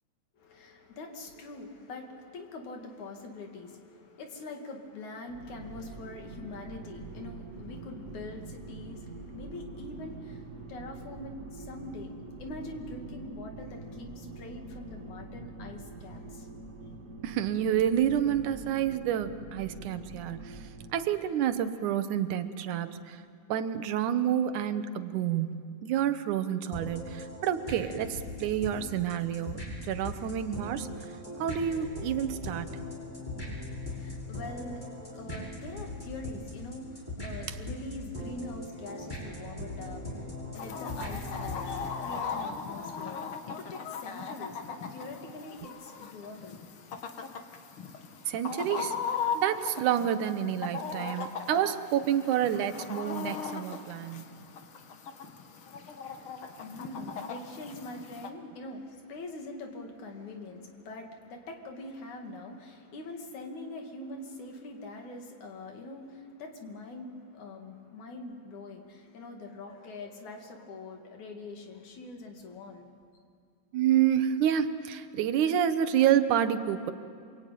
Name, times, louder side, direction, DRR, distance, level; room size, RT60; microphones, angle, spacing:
voice 1, 0.4-9.0 9.3-10.4 10.7-12.1 12.4-16.5 33.9-34.9 35.1-40.3 40.5-46.6 56.6-72.9, left 2 dB, 75° left, 3 dB, 3.8 m, -43 dB
sound 1, 5.3-20.9, right 3 dB, 30° right, 2.1 m, -45 dB
voice 2, 17.2-20.6 20.9-23.2 23.5-29.6 29.9-30.9 31.4-32.8 48.3-49.0 49.3-54.3 73.7-76.9, right 10 dB, 90° right, 11 dB, 2.5 m, -28 dB
sound 2, 26.7-41.9, left 1 dB, 15° left, 5.9 m, -40 dB
Chicken rooster, 40.5-58.3, left 6 dB, 50° left, 2.0 m, -38 dB
28.0 x 22.0 x 9.2 m, 2.2 s
omnidirectional pair, 3.4 m